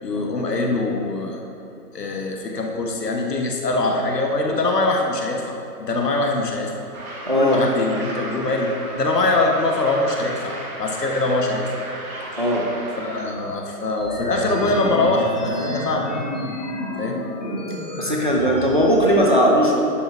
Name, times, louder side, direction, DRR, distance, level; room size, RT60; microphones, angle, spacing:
voice 1, 0.0-1.4 1.9-6.7 7.3-11.7 13.0-16.1 17.0-17.2, left 2 dB, 75° left, 1 dB, 1.5 m, -23 dB
sound 1, 6.9-13.2, right 1 dB, 60° right, 1.9 m, -35 dB
voice 2, 7.3-7.6 12.4-12.7 18.0-19.8, equal, 30° right, -2 dB, 0.6 m, -18 dB
sound 2, 14.0-19.0, left 1 dB, 25° left, 1.1 m, -29 dB
10.5 x 5.0 x 4.6 m, 2.8 s
hypercardioid pair, 180°, 48 cm